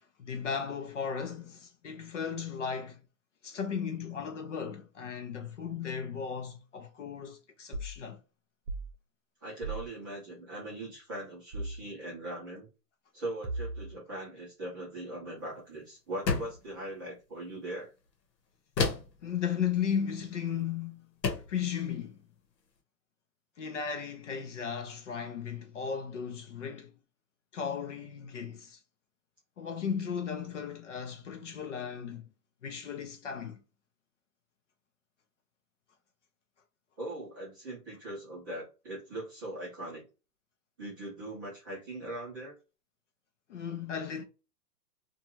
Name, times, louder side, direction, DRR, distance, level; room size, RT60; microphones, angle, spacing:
voice 1, 0.2-3.0 3.4-8.2 19.2-21.1 21.5-22.2 23.6-26.9 27.5-28.8 29.6-32.3 32.6-33.6 43.5-44.2, left 7 dB, 50° left, 0.5 m, -35 dB
sound 1, 7.7-8.0 8.7-8.9 9.6-9.9 11.5-11.8 13.4-14.0, right 2 dB, 60° right, 0.8 m, -36 dB
voice 2, 9.4-12.7 13.1-17.9 37.0-40.1 40.8-42.6, right 1 dB, 15° right, 0.6 m, -40 dB
sound 2, 16.3-16.7 18.8-19.2 20.5-20.7 21.2-21.6, left 4 dB, 90° left, 1.0 m, -30 dB
2.5 x 2.3 x 2.8 m
hypercardioid pair, 165°, 48 cm